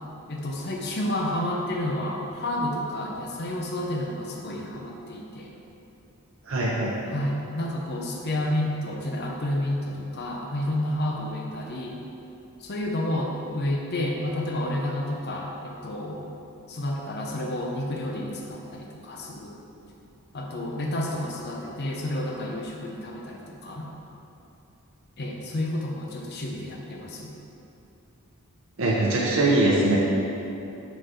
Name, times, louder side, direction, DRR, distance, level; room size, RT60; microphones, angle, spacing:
voice 1, 0.3-5.5 7.1-12.0 12.6-16.3 16.7-19.6 20.3-23.9 25.2-27.3, left 1 dB, 45° left, -1 dB, 0.6 m, -30 dB
voice 2, 6.5-6.9 28.8-30.0, right 2 dB, 60° right, -4 dB, 0.7 m, -22 dB
6.0 x 4.4 x 4.8 m, 2.9 s
head